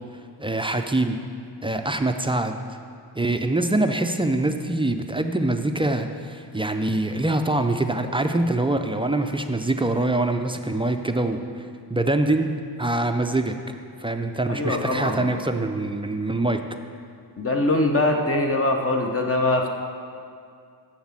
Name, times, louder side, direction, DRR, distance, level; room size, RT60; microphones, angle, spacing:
voice 1, 0.4-1.2 1.6-2.6 3.2-12.5 12.8-13.5 14.0-16.6, right 2 dB, 15° right, 6 dB, 0.3 m, -24 dB
voice 2, 14.5-15.3 17.4-19.7, left 2 dB, 35° left, 3 dB, 0.7 m, -22 dB
7.2 x 6.5 x 7.4 m, 2.3 s
wide cardioid pair, 135°, 42 cm